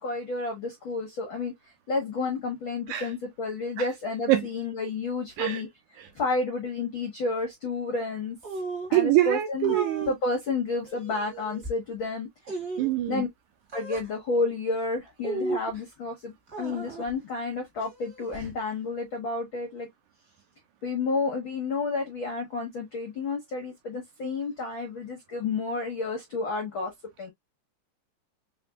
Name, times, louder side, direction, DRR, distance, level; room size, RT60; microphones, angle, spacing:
voice 1, 0.0-1.5 1.9-5.7 6.1-8.4 8.9-9.8 10.1-12.3 13.1-13.3 13.7-19.9 20.8-26.9 27.2-27.3, left 3 dB, 70° left, 1.1 m, -30 dB
voice 2, 5.4-5.7 6.0-6.1 8.9-10.1 12.8-13.2, right 15 dB, 80° right, 1.8 m, -24 dB
sound 1, 8.4-9.0 9.6-10.1 10.9-11.7 12.4-12.9 13.7-14.1 15.2-15.8 16.5-17.1 17.8-18.6, right 3 dB, 35° right, 1.1 m, -35 dB
5.0 x 3.4 x 2.2 m
omnidirectional pair, 3.9 m